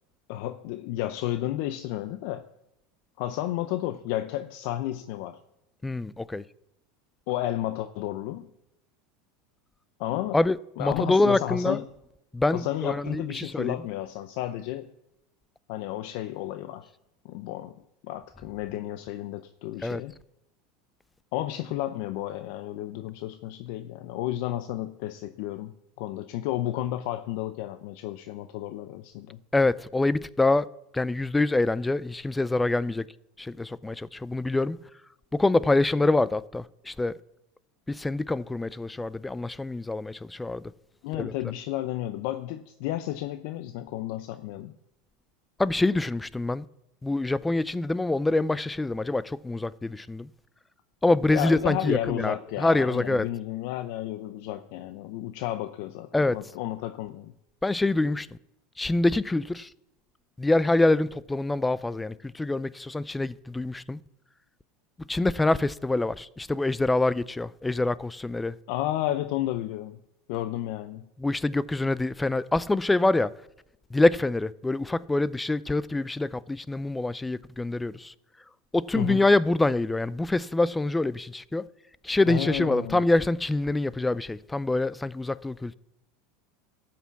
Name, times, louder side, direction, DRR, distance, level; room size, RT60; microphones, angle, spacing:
voice 1, 0.3-2.5 3.2-5.4 7.3-8.5 10.0-10.4 10.8-11.8 12.5-14.9 15.7-16.9 17.2-20.2 21.3-25.7 26.0-29.4 41.0-44.8 51.3-57.3 68.7-70.0 70.3-71.1 78.9-79.2 82.3-83.0, left 14 dB, 70° left, 0.5 m, -32 dB
voice 2, 5.8-6.4 10.3-11.8 12.3-13.8 19.8-20.0 29.5-30.7 30.9-33.0 33.4-34.8 35.3-37.1 37.9-40.7 41.1-41.3 45.6-46.7 47.0-50.3 51.0-53.3 56.1-56.4 57.6-58.3 58.8-59.7 60.4-64.0 65.1-68.6 71.2-73.3 73.9-78.1 78.7-81.7 82.0-85.7, left 2 dB, 10° left, 0.4 m, -25 dB
12.5 x 5.9 x 7.1 m
supercardioid pair, 115°, 0 cm